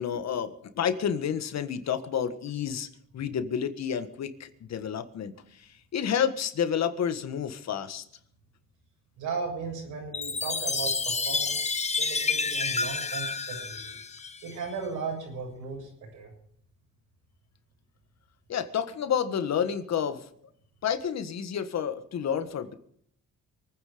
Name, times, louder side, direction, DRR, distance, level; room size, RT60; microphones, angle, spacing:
voice 1, 0.0-8.0 18.5-20.3 20.8-22.7, left 8 dB, 60° left, 10 dB, 1.6 m, -30 dB
voice 2, 9.2-14.0 14.4-16.3, right 5 dB, 90° right, 1 dB, 7.2 m, -36 dB
Chime, 10.1-14.7, left 4 dB, 20° left, 1.1 m, -29 dB
24.0 x 9.7 x 5.1 m, 0.67 s
cardioid pair, 90°, 30 cm